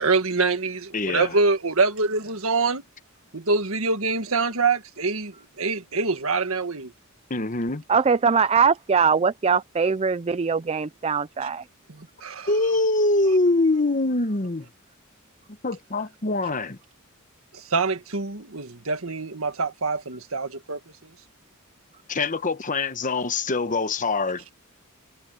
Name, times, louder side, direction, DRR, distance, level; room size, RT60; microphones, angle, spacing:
voice 1, 0.0-2.8 3.3-6.9 11.9-12.5 17.5-20.8, right 3 dB, 70° right, 1.8 m, -25 dB
voice 2, 0.9-1.4 7.3-7.8 12.5-14.7 15.6-16.8 22.1-24.4, left 2 dB, 40° left, 1.1 m, -24 dB
voice 3, 7.9-11.7, right 5 dB, 30° right, 0.4 m, -21 dB
head